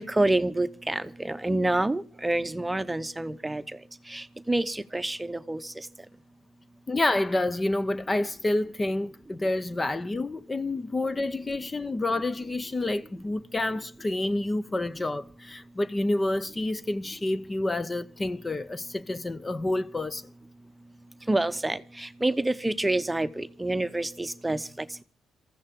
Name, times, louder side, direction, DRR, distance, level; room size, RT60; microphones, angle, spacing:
voice 1, 0.0-3.8 4.1-5.9 21.3-25.0, right 2 dB, 10° right, 0.9 m, -28 dB
voice 2, 6.9-20.3, left 2 dB, 25° left, 0.7 m, -28 dB
26.0 x 15.0 x 3.7 m
cardioid pair, 90°, 0 cm